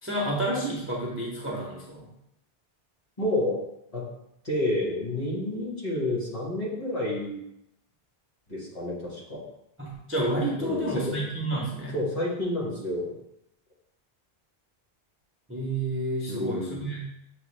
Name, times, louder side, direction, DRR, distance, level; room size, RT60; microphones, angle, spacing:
voice 1, 0.0-2.1 9.8-12.0 15.5-17.1, right 1 dB, 15° right, -3 dB, 0.6 m, -30 dB
voice 2, 3.2-3.6 3.9-4.0 4.4-7.4 8.5-9.4 10.6-11.2 11.9-13.2 16.3-16.9, left 1 dB, 35° left, -4 dB, 1.2 m, -29 dB
6.4 x 2.3 x 3.2 m, 0.81 s
omnidirectional pair, 1.1 m